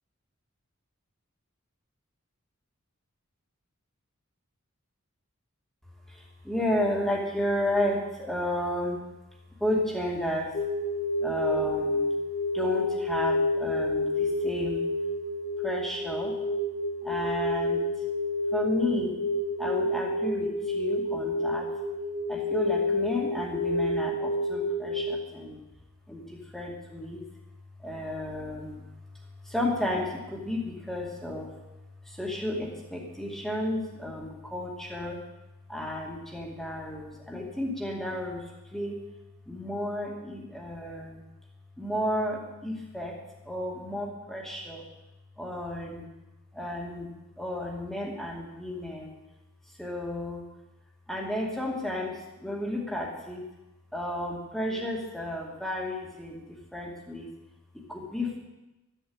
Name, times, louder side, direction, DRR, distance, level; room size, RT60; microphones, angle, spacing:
voice 1, 6.1-9.0 9.6-10.5 11.2-12.1 12.5-14.9 15.6-16.3 17.0-17.8 18.5-19.2 19.6-21.7 22.3-25.6 26.1-27.2 27.8-28.8 29.4-31.5 32.1-35.2 35.7-39.0 39.5-41.2 41.8-43.2 43.4-44.8 45.4-46.1 46.5-49.1 49.8-50.4 51.1-53.4 53.9-56.4 56.7-57.3 57.7-58.4, left 1 dB, ahead, -2 dB, 2.4 m, -32 dB
sound 1, 10.5-25.1, left 1 dB, 50° left, 2.5 m, -29 dB
13.0 x 7.3 x 8.8 m, 1.0 s
head